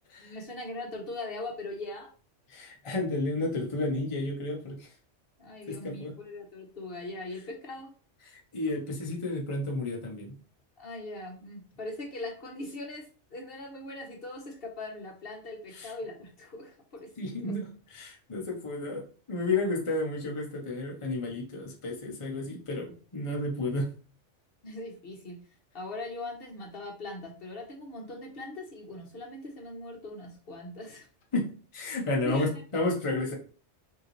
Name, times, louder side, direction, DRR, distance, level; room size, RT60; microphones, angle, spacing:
voice 1, 0.2-2.1 5.4-7.9 10.8-17.5 24.6-25.4 25.7-31.1 32.2-32.6, left 2 dB, 55° left, 1 dB, 1.1 m, -40 dB
voice 2, 2.5-4.9 5.7-6.1 8.2-10.4 15.7-15.9 17.2-19.0 19.3-23.9 31.3-31.4 31.7-33.3, left 2 dB, 30° left, 0 dB, 0.9 m, -32 dB
5.4 x 2.8 x 3.1 m, 0.39 s
omnidirectional pair, 1.2 m